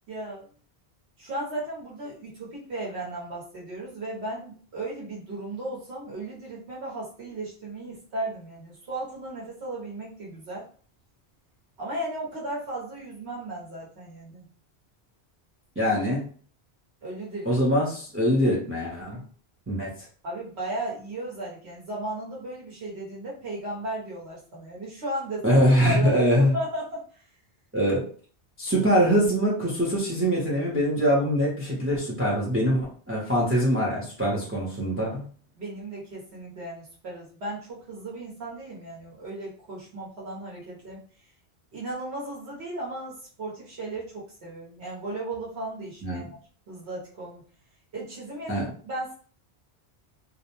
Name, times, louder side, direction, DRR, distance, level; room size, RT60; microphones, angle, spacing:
voice 1, 0.1-0.4 1.2-10.7 11.8-14.4 17.0-17.6 20.2-27.0 35.6-41.0 41.7-46.2 46.7-47.4 47.9-49.1, right 1 dB, 85° right, -5 dB, 1.1 m, -35 dB
voice 2, 15.8-16.2 17.5-19.2 19.7-19.9 25.4-26.5 27.7-28.0 28.6-35.2 46.0-46.3 48.5-48.7, equal, 15° right, -5 dB, 0.5 m, -23 dB
2.5 x 2.1 x 2.9 m, 0.43 s
omnidirectional pair, 1.1 m